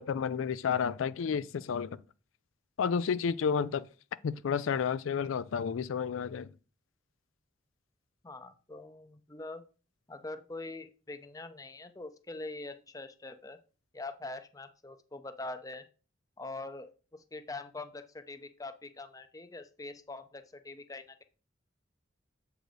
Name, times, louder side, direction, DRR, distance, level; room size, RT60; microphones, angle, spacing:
voice 1, 0.0-2.0 2.8-3.9 4.2-6.5, left 6 dB, 90° left, 0.4 m, -31 dB
voice 2, 8.2-9.6 10.1-13.6 13.9-15.8 16.4-21.2, left 2 dB, 20° left, 0.5 m, -43 dB
7.8 x 4.8 x 3.9 m
head